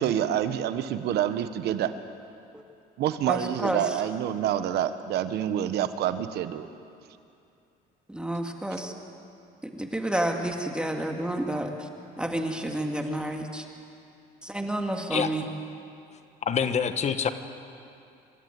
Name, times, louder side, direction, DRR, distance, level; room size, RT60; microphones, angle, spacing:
voice 1, 0.0-1.9 3.0-6.7, right 10 dB, 75° right, 11 dB, 1.2 m, -27 dB
voice 2, 3.3-4.0 8.1-8.9 9.6-11.9 12.2-13.7 14.4-15.5, right 1 dB, 5° right, 3 dB, 2.1 m, -30 dB
voice 3, 16.4-17.3, left 7 dB, 40° left, 10 dB, 1.3 m, -26 dB
27.0 x 13.0 x 9.4 m, 2.6 s
cardioid pair, 110°, 17 cm